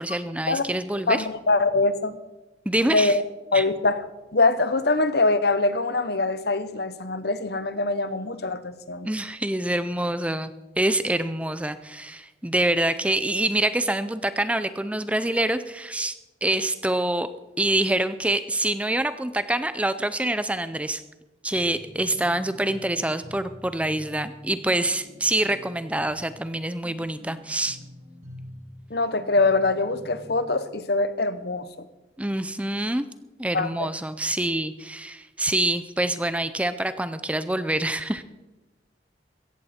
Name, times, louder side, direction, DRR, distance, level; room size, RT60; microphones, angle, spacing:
voice 1, 0.0-1.3 2.7-3.2 3.5-3.6 9.0-16.2 16.4-17.3 17.6-21.0 21.4-27.8 32.2-33.1 33.4-38.2, right 1 dB, 5° right, 12 dB, 0.5 m, -26 dB
voice 2, 1.1-2.2 2.9-3.2 3.5-4.1 4.3-9.1 28.9-31.9 33.5-33.9, left 3 dB, 60° left, 13 dB, 1.0 m, -23 dB
sound 1, 21.6-30.4, equal, 45° right, 4.4 m, -46 dB
17.0 x 14.5 x 4.3 m, 1.1 s
head